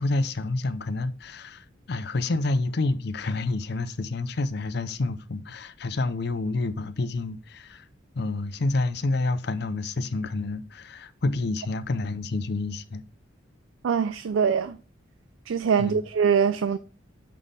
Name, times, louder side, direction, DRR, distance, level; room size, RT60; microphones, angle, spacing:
voice 1, 0.0-7.8 8.1-13.0 15.8-16.0, left 2 dB, 55° left, 0.5 m, -28 dB
voice 2, 13.8-14.8 15.5-16.8, right 6 dB, 85° right, 0.4 m, -23 dB
9.1 x 4.2 x 3.4 m
head